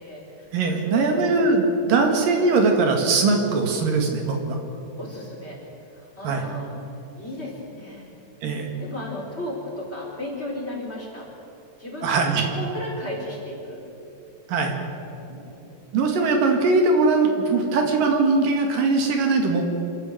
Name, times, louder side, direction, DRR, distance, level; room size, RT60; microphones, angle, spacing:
voice 1, 0.0-2.1 5.0-5.6 5.9-6.7 7.2-8.1 8.8-11.3 11.8-13.8 15.2-15.6, left 1 dB, 20° left, -2 dB, 4.2 m, -35 dB
voice 2, 0.5-4.6 6.2-6.4 8.4-8.7 12.0-12.5 14.5-14.7 15.9-19.6, right 3 dB, 85° right, 3 dB, 3.8 m, -21 dB
26.5 x 13.0 x 7.9 m, 2.9 s
omnidirectional pair, 3.8 m